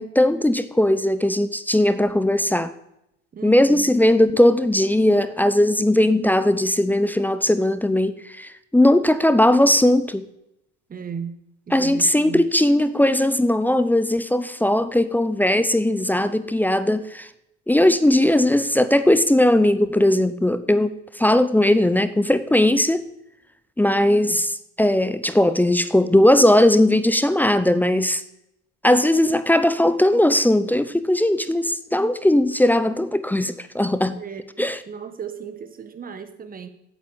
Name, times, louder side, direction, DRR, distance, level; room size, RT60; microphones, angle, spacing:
voice 1, 0.0-2.7 3.4-10.3 11.7-17.3 17.7-23.1 23.8-24.5 24.8-28.2 28.8-34.2 34.6-34.8, left 1 dB, 5° left, 13 dB, 0.6 m, -18 dB
voice 2, 3.3-3.9 10.9-11.4 11.7-12.5 23.9-24.4 34.1-36.7, right 6 dB, 25° right, 10 dB, 1.5 m, -36 dB
8.4 x 8.2 x 8.4 m, 0.82 s
supercardioid pair, 100°, 36 cm